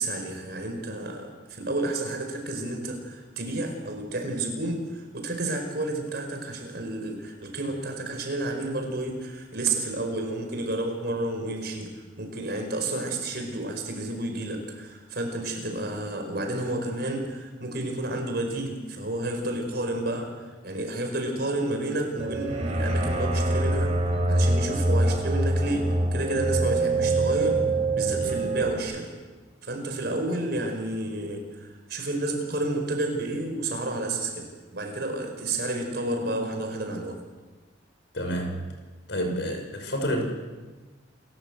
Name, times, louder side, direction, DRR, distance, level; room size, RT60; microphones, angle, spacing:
voice 1, 0.0-11.9 12.2-27.6 27.9-29.1 29.6-37.2, right 2 dB, 60° right, 3 dB, 5.0 m, -31 dB
sound 1, 22.2-28.8, right 2 dB, 30° right, 3.7 m, -25 dB
voice 2, 38.1-38.7 39.1-40.2, equal, 75° left, 3 dB, 5.4 m, -29 dB
28.0 x 13.5 x 8.1 m, 1.3 s
head